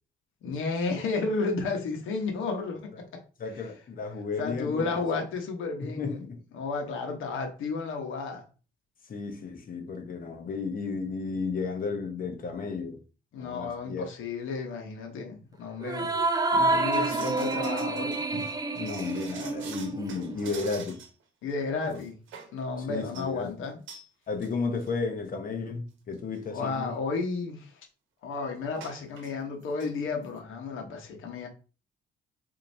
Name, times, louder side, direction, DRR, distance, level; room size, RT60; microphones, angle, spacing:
voice 1, 0.4-3.2 4.4-6.3 6.5-8.4 13.3-16.1 16.5-18.2 21.4-22.2 22.5-23.8 26.5-27.8 28.2-31.5, left 4 dB, 85° left, 1.1 m, -32 dB
voice 2, 3.4-4.9 5.8-6.4 9.1-13.0 13.4-14.1 18.3-18.5 18.7-21.0 21.9-22.0 22.9-23.5 24.3-26.9, left 4 dB, 45° left, 0.9 m, -33 dB
sound 1, 15.8-20.6, right 2 dB, 20° right, 0.4 m, -28 dB
sound 2, 16.8-21.2 21.5-21.6 21.9-22.6 23.0-23.3 23.9-24.1 24.4-24.5 24.8-24.9 25.7-25.8 26.1-26.4 28.8-29.3 29.6-29.9 30.2-30.3, right 6 dB, 75° right, 0.8 m, -46 dB
4.3 x 2.8 x 2.7 m
cardioid pair, 90°, 20 cm